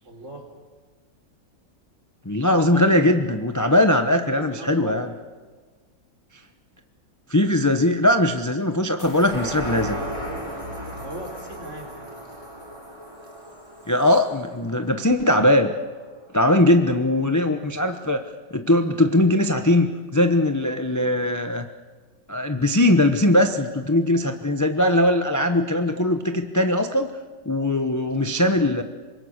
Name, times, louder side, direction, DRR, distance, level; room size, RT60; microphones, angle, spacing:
voice 1, 0.0-0.5 2.7-2.8 3.7-5.0 11.0-12.2, right 1 dB, 40° right, 2 dB, 4.1 m, -38 dB
voice 2, 2.2-5.1 7.3-10.0 13.9-15.7 16.3-18.2 18.5-21.7 22.3-27.1 27.4-28.8, left 1 dB, 15° left, 6 dB, 0.6 m, -20 dB
sound 1, 9.0-15.8 16.2-16.3, equal, 15° right, 4.1 m, -35 dB
25.5 x 22.0 x 6.6 m, 1.4 s
omnidirectional pair, 2.0 m